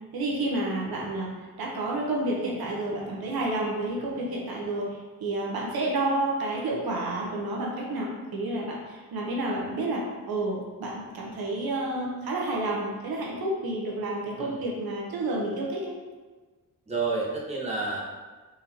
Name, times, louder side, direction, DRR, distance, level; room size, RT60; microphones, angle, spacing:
voice 1, 0.1-15.9, right 2 dB, 85° right, -3 dB, 0.8 m, -30 dB
voice 2, 16.9-18.0, right 3 dB, 20° right, -4 dB, 0.8 m, -30 dB
3.9 x 2.7 x 2.9 m, 1.3 s
wide cardioid pair, 100°, 36 cm